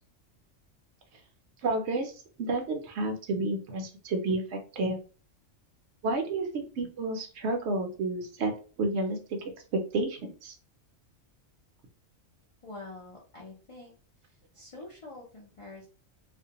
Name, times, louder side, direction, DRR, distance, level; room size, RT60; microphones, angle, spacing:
voice 1, 1.6-2.1 2.4-5.0 6.0-8.5 8.8-9.2 9.7-10.5, right 2 dB, 65° right, 4 dB, 0.8 m, -30 dB
voice 2, 12.6-13.9 14.5-15.9, left 2 dB, 45° left, -3 dB, 0.4 m, -46 dB
2.4 x 2.1 x 2.8 m, 0.37 s
omnidirectional pair, 1.4 m